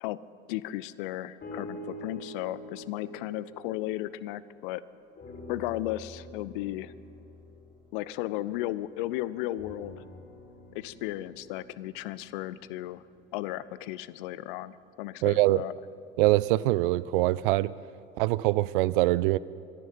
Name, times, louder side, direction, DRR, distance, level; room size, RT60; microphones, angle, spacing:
voice 1, 0.5-4.8 5.5-6.9 7.9-10.0 10.7-13.0 13.3-15.7, left 15 dB, 55° left, 18 dB, 0.6 m, -35 dB
sound 1, 1.4-4.8 5.2-8.9 9.5-13.7 14.4-14.5, left 1 dB, 35° left, 4.5 m, -47 dB
voice 2, 15.2-15.6 16.2-17.7 18.2-19.4, right 18 dB, 55° right, 19 dB, 0.4 m, -23 dB
24.0 x 10.5 x 5.7 m, 2.6 s
figure-of-eight pair, 65°, 31 cm